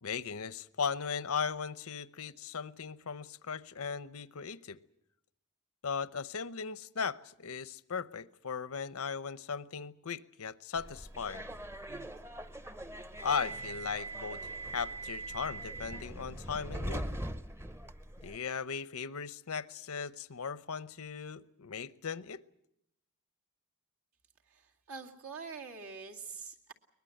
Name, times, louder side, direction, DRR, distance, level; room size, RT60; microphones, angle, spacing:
voice 1, 0.0-4.8 5.8-11.5 13.2-17.1 18.2-22.4, left 6 dB, 80° left, 16 dB, 0.8 m, -37 dB
Subway metro underground, 10.8-18.4, right 1 dB, 10° right, 0.8 m, -41 dB
voice 2, 24.5-26.7, right 5 dB, 75° right, 1 dB, 2.4 m, -45 dB
22.5 x 20.5 x 7.9 m, 0.76 s
head